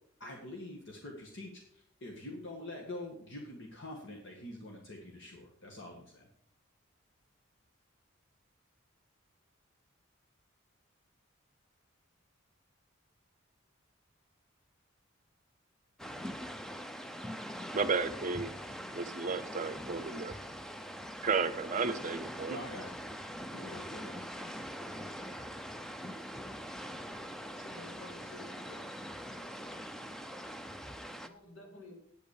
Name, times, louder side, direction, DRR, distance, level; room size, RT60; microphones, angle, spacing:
voice 1, 0.2-6.3 22.5-23.0 23.5-24.3, left 1 dB, 60° left, 0 dB, 1.8 m, -45 dB
sound 1, 16.0-31.3, equal, ahead, 0.5 m, -43 dB
voice 2, 17.7-18.5 18.9-20.3 21.2-22.6, right 4 dB, 35° right, 14 dB, 0.7 m, -33 dB
voice 3, 27.5-28.8 31.2-32.0, left 2 dB, 80° left, 2 dB, 3.2 m, -52 dB
9.2 x 8.2 x 6.5 m, 0.68 s
head